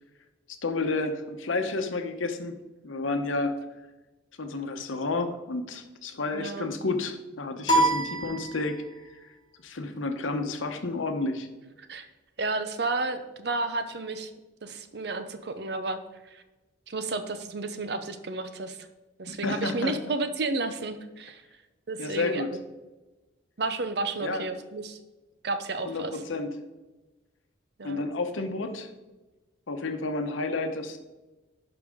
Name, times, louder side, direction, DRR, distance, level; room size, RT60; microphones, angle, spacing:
voice 1, 0.6-2.5 2.8-3.6 4.4-8.8 9.6-11.5 19.3-20.0 22.0-22.5 24.2-24.5 25.8-26.5 27.8-28.9 29.7-31.0, left 3 dB, 90° left, 7 dB, 0.9 m, -30 dB
voice 2, 6.3-6.7 11.9-12.1 12.4-14.3 14.6-16.0 16.3-16.4 16.9-18.8 19.2-21.4 21.9-22.4 23.6-25.0 25.4-26.2 27.8-28.0, right 3 dB, 55° right, 9 dB, 0.7 m, -32 dB
sound 1, 7.7-9.1, right 1 dB, 20° left, 1.2 m, -26 dB
11.5 x 4.9 x 3.6 m, 1.1 s
head